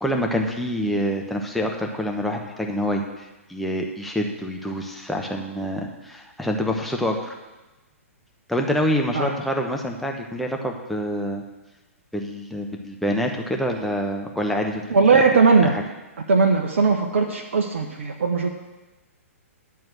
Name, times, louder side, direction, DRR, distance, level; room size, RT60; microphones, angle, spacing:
voice 1, 0.0-7.3 8.5-11.4 12.1-14.8 15.1-15.2 15.7-15.8, equal, ahead, 1 dB, 1.0 m, -26 dB
voice 2, 14.9-15.7 16.3-18.5, right 4 dB, 55° right, 2 dB, 0.9 m, -19 dB
10.5 x 4.6 x 7.7 m, 1.1 s
figure-of-eight pair, 115°, 8 cm